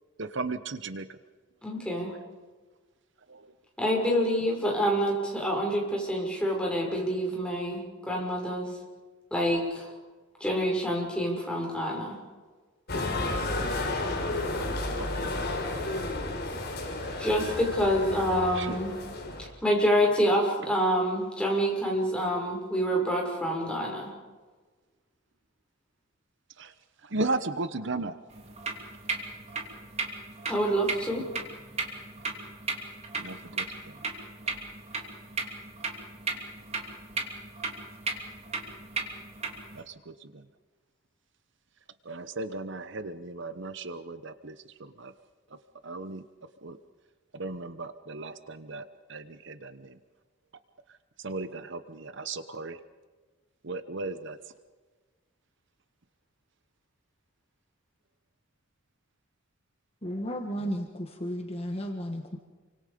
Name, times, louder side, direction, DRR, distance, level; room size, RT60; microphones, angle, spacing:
voice 1, 0.2-1.2 3.3-3.5 15.0-15.3 18.5-18.8 26.6-26.7 27.0-28.2 33.2-34.0 35.0-35.1 39.7-40.4 42.0-45.1 45.8-46.2 46.6-46.8 47.3-50.0 51.2-52.8 53.6-54.4, right 3 dB, 60° right, 11 dB, 1.0 m, -36 dB
voice 2, 1.6-2.1 3.8-8.8 9.3-9.9 10.4-12.2 17.2-18.9 19.4-24.1 30.5-31.3, equal, 5° left, -2 dB, 6.3 m, -27 dB
sound 1, 12.9-19.5, left 2 dB, 55° left, 4.6 m, -32 dB
sound 2, 28.3-39.8, right 3 dB, 30° right, 3.0 m, -36 dB
voice 3, 60.0-62.4, equal, 30° left, 2 dB, 1.7 m, -33 dB
29.0 x 25.0 x 5.3 m, 1.3 s
head